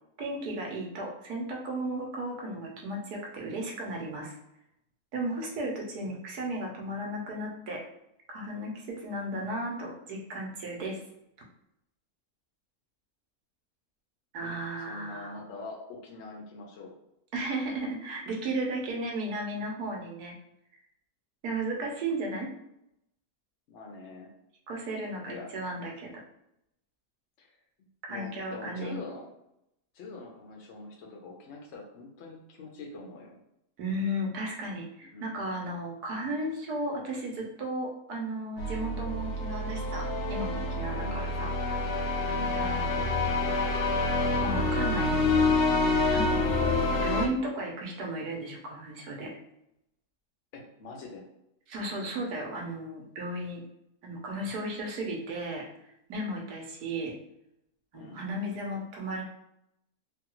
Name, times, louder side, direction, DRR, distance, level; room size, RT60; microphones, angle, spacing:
voice 1, 0.2-4.3 5.1-7.8 8.3-11.0 14.3-15.4 17.3-20.3 21.4-22.5 24.7-26.2 28.1-28.9 33.8-41.9 42.5-43.1 44.4-46.5 47.0-49.4 51.7-53.6 54.0-55.7 56.1-57.1 57.9-59.2, right 1 dB, 85° right, -1 dB, 1.3 m, -35 dB
voice 2, 14.9-16.9 23.7-24.3 25.3-25.5 27.4-27.5 27.8-29.3 29.9-33.4 35.0-35.3 40.9-41.2 42.0-42.6 50.5-51.3 57.9-58.3, left 3 dB, 55° left, 0 dB, 1.0 m, -44 dB
sound 1, 38.6-47.3, left 2 dB, 90° left, 1.1 m, -27 dB
3.2 x 2.3 x 2.9 m, 0.81 s
omnidirectional pair, 1.6 m